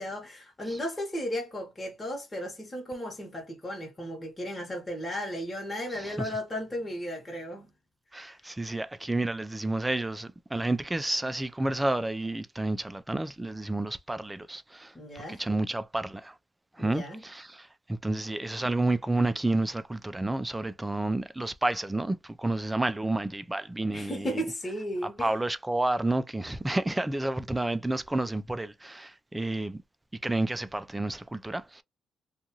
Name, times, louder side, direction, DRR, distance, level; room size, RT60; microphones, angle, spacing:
voice 1, 0.0-7.7 14.9-15.4 16.8-17.2 23.9-25.3, equal, 20° left, 1.1 m, -35 dB
voice 2, 5.9-6.3 8.1-14.9 15.3-16.4 16.8-24.4 25.2-29.8 30.2-31.8, right 2 dB, 10° right, 0.4 m, -30 dB
2.5 x 2.3 x 2.9 m
cardioid pair, 90°, 0 cm